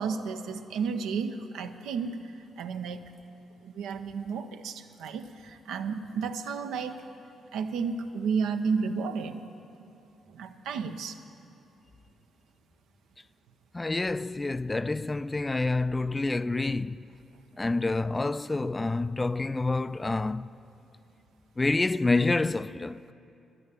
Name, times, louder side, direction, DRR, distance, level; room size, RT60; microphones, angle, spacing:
voice 1, 0.0-3.1 3.6-7.0 7.5-9.4 10.3-11.2, right 5 dB, 80° right, 0.6 m, -32 dB
voice 2, 13.7-17.1 17.6-20.5 21.6-23.1, left 3 dB, 25° left, 0.3 m, -28 dB
11.0 x 9.9 x 8.0 m
supercardioid pair, 50°, 0 cm